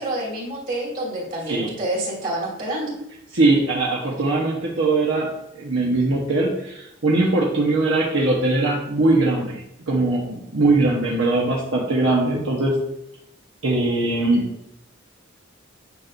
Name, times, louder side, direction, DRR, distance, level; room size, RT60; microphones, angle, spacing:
voice 1, 0.0-2.9, right 1 dB, 40° right, -4 dB, 2.7 m, -28 dB
voice 2, 3.3-12.8 13.6-14.5, right 2 dB, 70° right, -4 dB, 1.2 m, -21 dB
9.7 x 6.0 x 2.6 m, 0.82 s
head